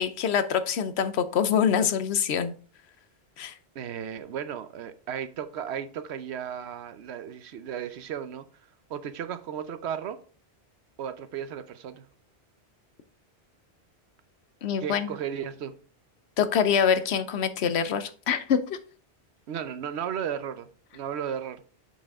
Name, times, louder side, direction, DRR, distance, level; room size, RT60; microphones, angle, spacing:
voice 1, 0.0-2.5 3.4-3.5 14.6-15.1 16.4-18.8, left 7 dB, 75° left, 1.0 m, -25 dB
voice 2, 3.7-8.4 8.9-10.2 11.0-12.1 14.8-15.7 19.5-20.7 20.9-21.6, right 8 dB, 80° right, 1.0 m, -34 dB
7.2 x 5.4 x 3.5 m
omnidirectional pair, 1.1 m